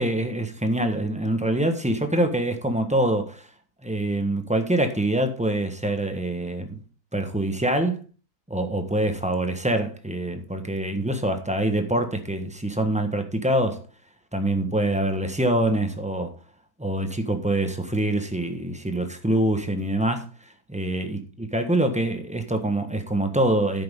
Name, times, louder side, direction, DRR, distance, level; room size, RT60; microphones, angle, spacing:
voice 1, 0.0-3.5 3.8-6.8 7.1-8.0 8.5-13.8 14.3-16.3 16.8-20.3 20.7-23.8, right 1 dB, 5° right, 1.2 m, -25 dB
10.5 x 8.8 x 3.7 m
omnidirectional pair, 1.7 m